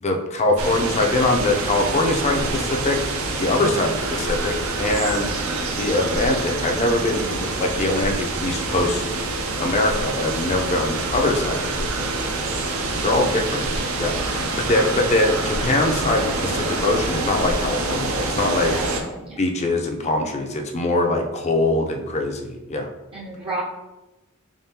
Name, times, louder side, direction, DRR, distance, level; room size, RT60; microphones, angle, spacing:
voice 1, 0.0-3.0 3.4-5.3 5.8-9.0 9.6-12.3 12.9-13.7 14.0-18.7 19.4-22.9, left 2 dB, 30° left, 3 dB, 0.4 m, -23 dB
sound 1, 0.6-19.0, right 2 dB, 75° right, 0.6 m, -26 dB
voice 2, 18.7-19.4 23.1-23.6, right 3 dB, 25° right, -5 dB, 0.5 m, -34 dB
3.6 x 3.5 x 2.8 m, 1.1 s
head